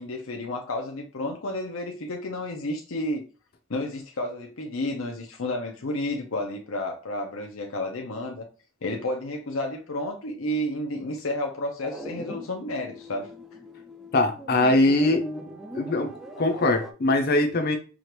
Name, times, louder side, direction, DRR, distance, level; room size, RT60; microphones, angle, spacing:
voice 1, 0.0-3.2 3.7-8.5 8.8-13.3, left 1 dB, 80° left, 0.7 m, -31 dB
sound 1, 11.8-16.9, equal, ahead, 0.4 m, -40 dB
voice 2, 14.1-15.3 15.7-17.8, left 2 dB, 50° left, 0.7 m, -22 dB
4.9 x 2.5 x 3.0 m
head